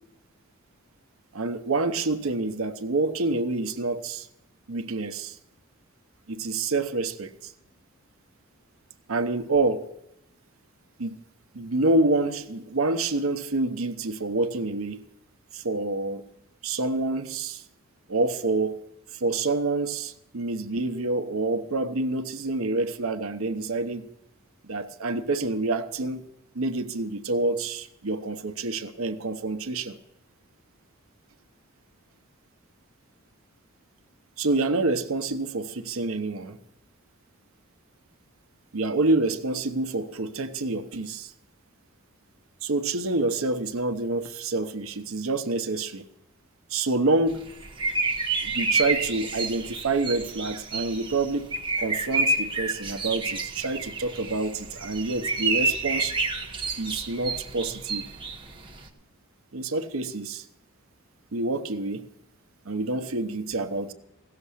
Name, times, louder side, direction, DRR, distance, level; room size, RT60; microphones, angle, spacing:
voice 1, 1.3-4.3 4.7-5.4 6.3-7.5 9.1-9.9 11.0-11.2 11.5-15.0 15.5-16.2 16.6-17.6 18.1-18.8 19.1-24.1 24.6-26.2 26.5-30.0 34.4-36.6 38.7-41.3 42.6-46.1 46.7-47.5 48.4-56.2 56.8-58.1 59.5-60.4 61.3-62.1 62.6-63.9, right 2 dB, 70° right, 0.8 m, -27 dB
sound 1, 47.3-58.9, right 3 dB, 25° right, 1.1 m, -29 dB
17.0 x 6.8 x 8.3 m
head